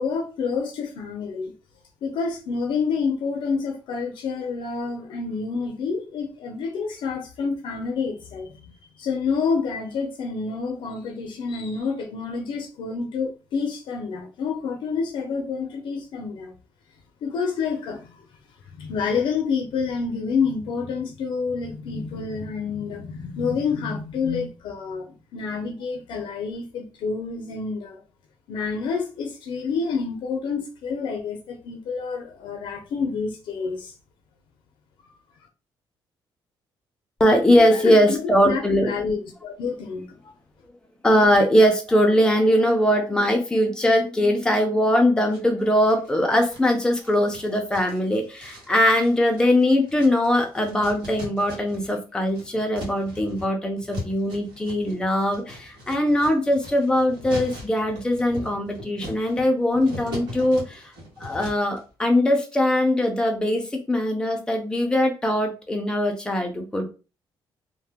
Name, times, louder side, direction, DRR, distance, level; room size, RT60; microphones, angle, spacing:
voice 1, 0.0-1.5 2.0-16.5 17.2-18.3 18.7-28.0 28.5-33.9 37.6-40.3, left 5 dB, 65° left, 0.5 m, -28 dB
voice 2, 37.2-38.9 41.0-60.8 61.2-66.9, left 1 dB, 10° left, 0.5 m, -21 dB
sound 1, 45.3-46.1 46.5-52.0 52.2-61.8, left 1 dB, 60° right, 1.3 m, -40 dB
2.7 x 2.1 x 3.4 m
cardioid pair, 175°, 9 cm